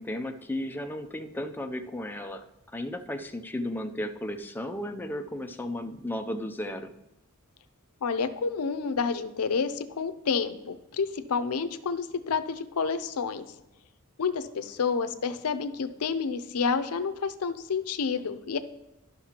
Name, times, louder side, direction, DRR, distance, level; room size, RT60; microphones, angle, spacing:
voice 1, 0.0-2.4 2.7-6.9, left 1 dB, 10° left, 6 dB, 0.4 m, -34 dB
voice 2, 8.0-13.4 14.2-18.6, left 5 dB, 85° left, 11 dB, 0.5 m, -29 dB
12.0 x 5.8 x 2.9 m, 0.93 s
head